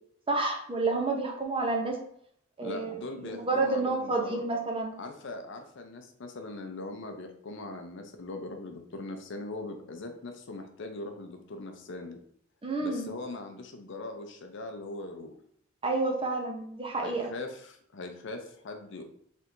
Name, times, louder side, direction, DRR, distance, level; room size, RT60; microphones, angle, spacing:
voice 1, 0.3-2.0 2.6-4.9 12.6-13.1 15.8-17.3, right 3 dB, 30° right, 1 dB, 0.7 m, -29 dB
voice 2, 2.6-4.4 5.0-12.2 12.8-15.3 17.0-19.0, left 2 dB, 65° left, 5 dB, 0.6 m, -40 dB
3.4 x 2.6 x 4.3 m, 0.65 s
head